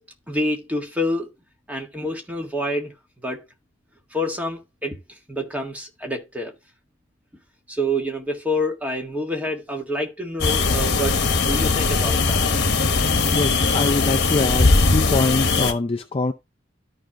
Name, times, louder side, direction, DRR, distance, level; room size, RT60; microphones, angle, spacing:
voice 1, 0.3-1.3 1.7-2.9 3.2-3.4 4.1-5.0 5.3-6.5 7.7-12.4, equal, 5° right, 1.6 m, -27 dB
sound 1, 10.4-15.7, left 3 dB, 55° left, 1.2 m, -20 dB
voice 2, 13.3-16.3, left 3 dB, 30° left, 0.4 m, -24 dB
13.0 x 5.0 x 2.9 m
head